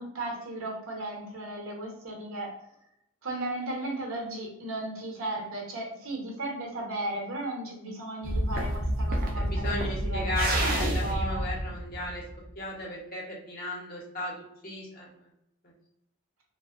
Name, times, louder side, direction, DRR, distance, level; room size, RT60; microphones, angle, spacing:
voice 1, 0.0-2.6 3.2-11.4, right 2 dB, 70° right, -1 dB, 0.8 m, -36 dB
sound 1, 8.2-12.5, right 1 dB, 40° right, 0.4 m, -29 dB
voice 2, 9.4-12.2 12.6-15.1 15.6-15.7, left 1 dB, 40° left, -2 dB, 0.7 m, -35 dB
2.5 x 2.1 x 2.4 m, 0.78 s
head